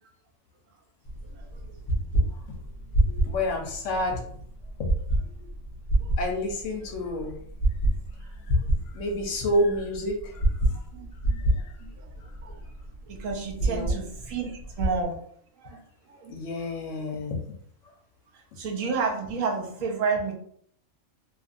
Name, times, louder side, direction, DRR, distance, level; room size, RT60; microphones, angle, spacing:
sound 1, 1.1-15.0, right 1 dB, 45° left, 0.5 m, -28 dB
voice 1, 1.3-1.6 3.0-3.2 5.4-5.5 6.0-6.1 8.2-8.7 10.9-11.5 11.8-12.1 12.4-12.6 13.1-15.2 15.5-15.8 16.1-16.3 18.3-20.3, right 5 dB, 75° right, 0 dB, 1.0 m, -32 dB
voice 2, 3.2-4.2 4.8-4.9 6.2-7.4 8.5-8.6 8.9-10.6 11.3-11.7 13.6-14.0 16.3-17.4, left 1 dB, 70° left, 2 dB, 0.8 m, -29 dB
2.7 x 2.4 x 2.4 m, 0.62 s
omnidirectional pair, 1.4 m